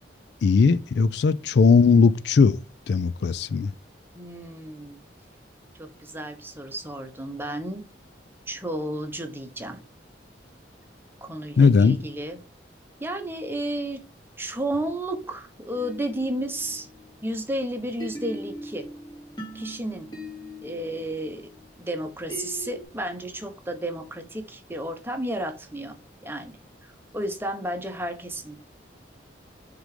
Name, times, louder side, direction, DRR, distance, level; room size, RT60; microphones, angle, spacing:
voice 1, 0.4-2.6 2.9-3.7 11.6-12.0, left 5 dB, 65° left, 0.3 m, -18 dB
voice 2, 4.1-5.0 5.8-7.8 8.5-9.8 11.2-12.4 13.0-14.0 14.4-16.9 17.2-18.9 19.5-20.1 20.6-21.5 21.8-26.0 26.2-26.5 26.8-28.5, right 1 dB, 10° right, 1.0 m, -32 dB
sound 1, 15.7-17.5 18.0-22.8, equal, 25° left, 2.3 m, -40 dB
6.4 x 3.8 x 5.0 m
head